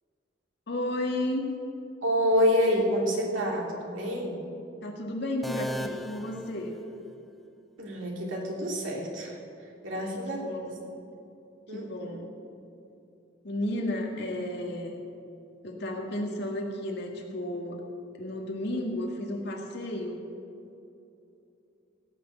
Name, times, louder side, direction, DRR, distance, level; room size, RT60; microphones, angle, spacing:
voice 1, 0.7-1.4 4.8-6.8 9.9-10.8 11.7-12.3 13.4-15.0 15.6-17.8 18.1-20.2, left 1 dB, 60° left, 0 dB, 2.0 m, -33 dB
voice 2, 2.0-4.4 7.8-9.4 9.8-10.5 11.7-12.2, equal, 80° right, -1 dB, 2.8 m, -27 dB
sound 1, 5.4-7.3, equal, ahead, 0.4 m, -37 dB
17.0 x 6.3 x 8.0 m, 2.7 s
head